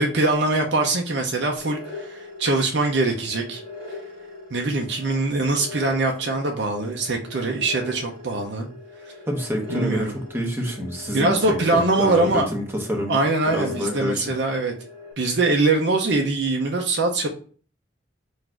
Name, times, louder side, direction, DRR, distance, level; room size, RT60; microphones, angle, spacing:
voice 1, 0.0-3.6 4.5-8.7 9.7-10.2 11.1-12.5 13.1-14.7 15.2-17.3, right 2 dB, 65° right, 1 dB, 0.6 m, -22 dB
sound 1, 1.6-15.1, left 3 dB, 20° left, 1.4 m, -40 dB
voice 2, 9.3-11.4 11.7-13.2 13.5-14.3, equal, 15° right, 0 dB, 1.0 m, -27 dB
4.1 x 2.6 x 4.4 m, 0.42 s
head